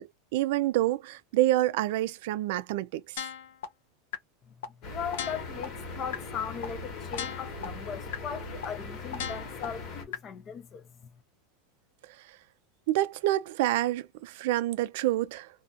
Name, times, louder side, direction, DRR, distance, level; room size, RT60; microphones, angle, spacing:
voice 1, 0.0-3.2 12.9-15.5, right 15 dB, 60° right, 0.3 m, -27 dB
sound 1, 3.2-3.6 4.1-4.2 4.6-4.7 5.1-5.6 6.1-6.2 6.6-6.7 7.1-7.6 8.1-8.2 8.6-8.7 9.1-9.6 10.1-10.2, left 9 dB, 80° left, 0.5 m, -35 dB
sound 2, 4.8-10.0, left 3 dB, 40° left, 1.1 m, -40 dB
voice 2, 4.9-10.9, left 7 dB, 25° left, 0.4 m, -38 dB
2.4 x 2.2 x 2.6 m
supercardioid pair, 160°, 0 cm